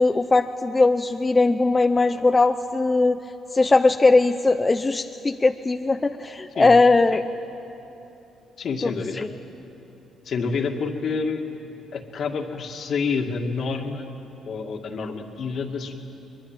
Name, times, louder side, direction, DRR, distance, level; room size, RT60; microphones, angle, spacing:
voice 1, 0.0-3.2 3.5-7.2 8.8-9.3, left 3 dB, 25° left, 7 dB, 0.7 m, -19 dB
voice 2, 8.6-9.3 10.3-11.5 11.9-14.0 14.4-15.9, left 5 dB, 60° left, 4 dB, 2.1 m, -28 dB
23.0 x 22.0 x 9.1 m, 3.0 s
cardioid pair, 90°, 0 cm